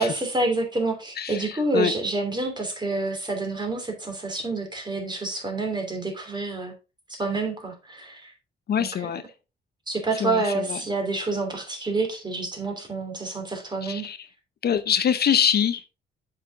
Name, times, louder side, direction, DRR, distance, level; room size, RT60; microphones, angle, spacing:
voice 1, 0.0-6.7 7.1-8.3 8.8-8.9 9.9-14.1, right 3 dB, 20° right, 3.1 m, -28 dB
voice 2, 1.2-1.9 8.7-9.2 10.2-10.8 13.8-14.3 14.6-15.9, left 8 dB, 55° left, 0.7 m, -24 dB
7.4 x 5.9 x 3.6 m
cardioid pair, 90°, 20 cm